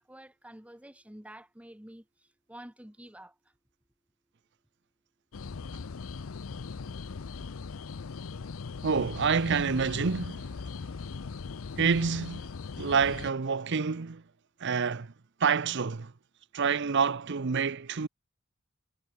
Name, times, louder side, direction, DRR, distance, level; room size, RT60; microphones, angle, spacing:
voice 1, 0.0-2.0 2.5-3.3, right 1 dB, 5° right, 1.9 m, -48 dB
sound 1, 5.3-13.3, left 4 dB, 75° left, 0.6 m, -39 dB
voice 2, 8.8-10.4 11.8-12.4 12.8-14.2 14.6-15.1 15.4-16.1 16.5-18.1, right 5 dB, 55° right, 0.7 m, -27 dB
head